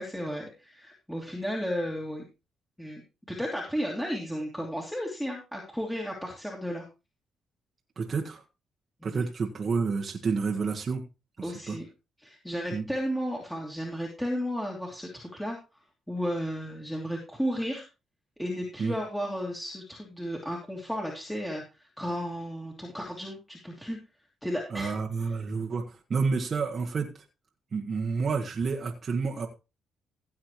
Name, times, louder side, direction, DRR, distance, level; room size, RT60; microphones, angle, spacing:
voice 1, 0.0-2.2 2.8-3.0 3.3-6.8 9.0-9.3 11.4-11.8 12.2-15.6 16.1-17.8 18.4-24.0 24.4-25.0 25.2-25.3, equal, 5° left, -2 dB, 2.8 m, -33 dB
voice 2, 8.0-8.4 9.0-11.0 11.4-11.8 12.7-12.8 18.8-18.9 24.7-27.1 27.7-29.5, right 4 dB, 45° right, 0 dB, 1.5 m, -29 dB
16.0 x 7.7 x 3.1 m, 0.29 s
cardioid pair, 90°, 0 cm